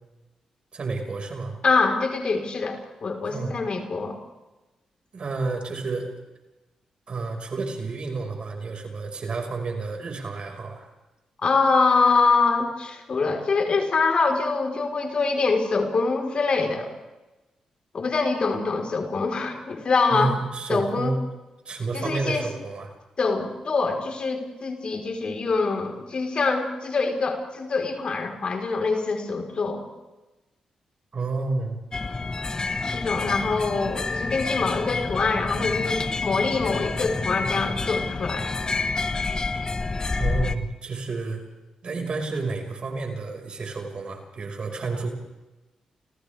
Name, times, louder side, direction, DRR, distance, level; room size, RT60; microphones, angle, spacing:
voice 1, 0.7-1.6 3.3-3.5 5.1-6.1 7.1-10.9 20.1-21.2 21.6-22.9 31.1-31.8 40.2-41.4 41.8-45.1, right 3 dB, 55° right, 3 dB, 5.5 m, -30 dB
voice 2, 1.6-4.1 11.4-16.9 17.9-20.3 20.7-21.1 21.9-22.5 23.2-29.8 32.9-38.6, left 4 dB, 55° left, 3 dB, 4.4 m, -24 dB
sound 1, 31.9-40.6, left 3 dB, 35° left, 1.5 m, -28 dB
29.5 x 29.0 x 3.6 m, 1.1 s
supercardioid pair, 45°, 2 cm